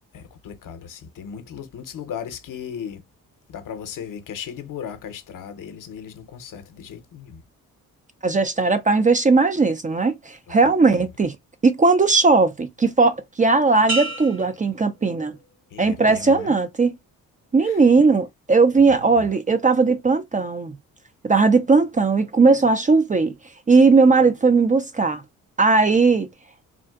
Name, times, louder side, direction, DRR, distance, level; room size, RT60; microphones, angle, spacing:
voice 1, 0.1-3.0 3.5-7.4 10.6-11.0 15.7-16.5 17.6-17.8 19.1-19.3, left 8 dB, 60° left, 0.8 m, -36 dB
voice 2, 8.2-11.3 11.6-15.4 15.8-16.9 17.5-20.8 21.2-23.3 23.7-25.2 25.6-26.3, right 4 dB, 20° right, 0.4 m, -18 dB
sound 1, 13.9-15.7 16.2-16.6, right 2 dB, 85° right, 2.1 m, -32 dB
3.7 x 2.4 x 2.3 m
supercardioid pair, 55°, 36 cm